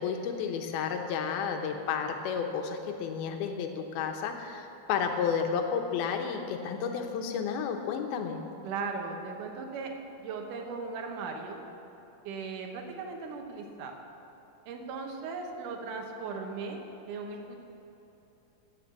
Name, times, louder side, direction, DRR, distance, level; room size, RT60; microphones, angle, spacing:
voice 1, 0.0-8.4, left 6 dB, 85° left, 4 dB, 2.9 m, -32 dB
voice 2, 8.6-9.9 10.2-11.6 12.2-14.0 14.7-16.8 17.1-17.6, right 4 dB, 65° right, 2 dB, 2.5 m, -37 dB
14.5 x 6.6 x 8.3 m, 3.0 s
omnidirectional pair, 4.4 m